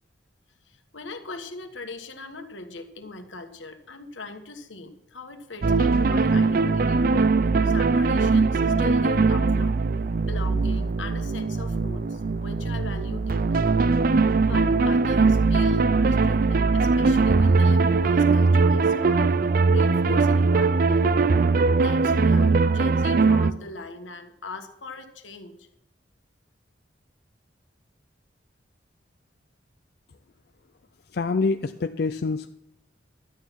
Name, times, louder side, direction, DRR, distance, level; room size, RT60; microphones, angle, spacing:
voice 1, 0.7-7.3 7.6-9.8 10.3-13.7 14.4-19.4 19.7-21.0 21.8-25.6, left 3 dB, 80° left, 6 dB, 1.5 m, -40 dB
sound 1, 5.6-23.5, right 4 dB, 50° right, 0.4 m, -21 dB
voice 2, 31.1-32.5, left 4 dB, 55° left, 9 dB, 0.4 m, -26 dB
12.0 x 9.2 x 5.8 m, 0.78 s
head